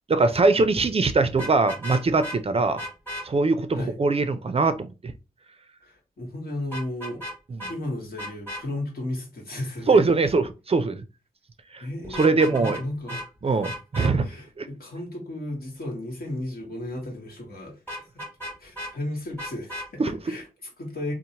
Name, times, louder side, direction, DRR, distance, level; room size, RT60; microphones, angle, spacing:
voice 1, 0.1-2.8 3.2-5.1 7.5-7.6 9.9-11.0 11.7-11.8 12.2-12.8 13.4-14.3 14.6-14.7 20.0-20.1, right 3 dB, 40° right, 0.4 m, -22 dB
Vehicle horn car horn honking, 1.3-2.4 2.8-3.3 6.7-7.3 7.6-7.7 8.2-8.6 12.0-12.8 13.1-13.3 13.6-14.1 17.9-18.9 19.4-19.9, equal, 10° left, 1.1 m, -35 dB
voice 2, 5.8-7.2 7.7-10.0 11.8-13.6 14.0-18.2 18.6-21.1, left 1 dB, 70° left, 1.1 m, -34 dB
2.9 x 2.0 x 2.8 m
cardioid pair, 45°, 16 cm